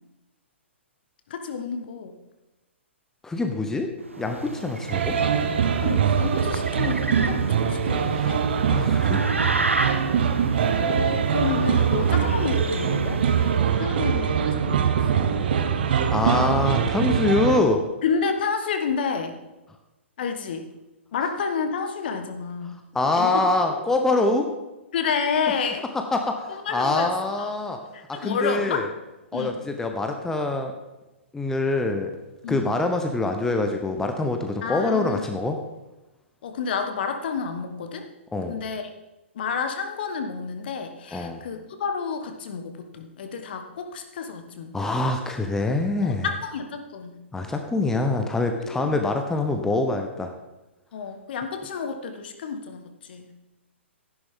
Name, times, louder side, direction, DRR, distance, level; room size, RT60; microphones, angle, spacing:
voice 1, 1.3-2.2 5.8-8.4 10.8-13.2 13.8-15.2 18.0-19.4 20.2-20.7 21.1-22.8 23.1-23.8 24.9-25.8 26.5-27.1 27.4-27.5 27.9-28.8 29.3-29.6 32.4-32.8 34.6-35.2 36.4-38.1 38.5-38.9 39.3-44.7 46.0-47.2 48.6-49.1 50.9-53.3, left 5 dB, 50° left, 7 dB, 1.4 m, -30 dB
voice 2, 3.2-3.9 4.2-5.1 8.7-9.3 16.1-17.8 22.9-24.5 26.1-27.8 28.1-28.9 29.3-30.7 31.3-32.1 32.5-35.6 38.3-38.6 41.1-41.4 44.7-46.3 47.3-50.3, left 2 dB, 5° left, 4 dB, 0.9 m, -24 dB
sound 1, 4.0-13.8, right 2 dB, 85° right, 0.8 m, -32 dB
sound 2, 4.9-17.6, right 7 dB, 50° right, 1.0 m, -23 dB
13.0 x 11.0 x 3.7 m, 1.0 s
figure-of-eight pair, 115°, 7 cm